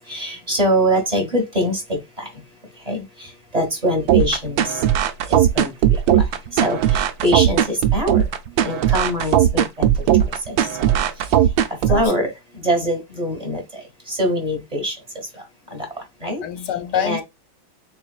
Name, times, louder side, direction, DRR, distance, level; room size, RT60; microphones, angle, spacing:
voice 1, 0.1-2.3 2.9-3.0 3.5-4.7 5.3-5.7 6.1-6.2 6.6-8.2 8.6-9.9 10.5-11.0 11.9-12.3 12.6-13.6 14.1-14.9 15.7-15.9 16.2-16.4 16.9-17.2, equal, 25° right, 1.0 m, -23 dB
sound 1, 4.1-12.1, right 10 dB, 75° right, 1.2 m, -18 dB
voice 2, 11.9-12.3 16.4-17.2, left 8 dB, 70° left, 1.2 m, -26 dB
7.2 x 2.4 x 2.3 m
omnidirectional pair, 2.2 m